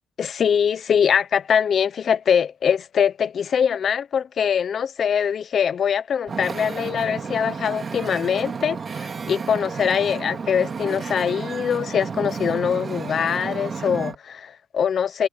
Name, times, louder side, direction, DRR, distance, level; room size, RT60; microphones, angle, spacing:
voice 1, 0.2-15.3, left 7 dB, 40° left, 0.5 m, -23 dB
Wind / Ocean, 6.3-14.2, right 5 dB, 30° right, 3.0 m, -32 dB
cardioid pair, 150°, 0 cm